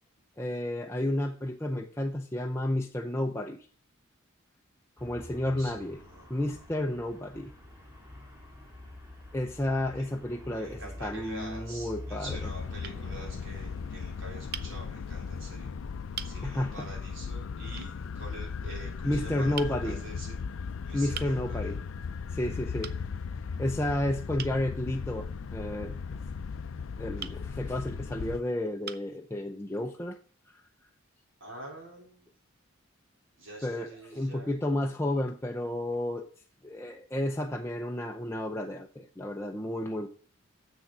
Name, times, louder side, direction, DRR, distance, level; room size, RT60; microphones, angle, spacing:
voice 1, 0.4-3.7 5.0-6.0 6.3-7.5 9.3-12.4 16.4-16.9 19.0-20.0 20.9-21.8 22.3-23.0 23.6-25.9 27.0-30.2 33.6-36.3 36.6-40.1, left 1 dB, 10° left, 2 dB, 0.5 m, -31 dB
Traffic noise roadway noise, 5.0-14.8, left 1 dB, 15° right, 2.1 m, -47 dB
voice 2, 5.6-6.4 10.0-10.1 10.5-15.7 16.2-21.7 31.4-32.2 33.4-34.5, right 1 dB, 65° right, -1 dB, 3.8 m, -46 dB
sound 1, 12.3-28.4, left 5 dB, 70° left, 0.4 m, -37 dB
sound 2, 12.8-13.0 14.5-14.7 15.6-15.7 16.1-16.4 17.8-18.0 19.6-19.8 21.1-21.4 22.8-23.0 24.4-24.6 27.2-27.4 28.2-28.3 28.8-29.1, right 9 dB, 50° right, 0.5 m, -40 dB
7.4 x 6.4 x 7.1 m, 0.44 s
head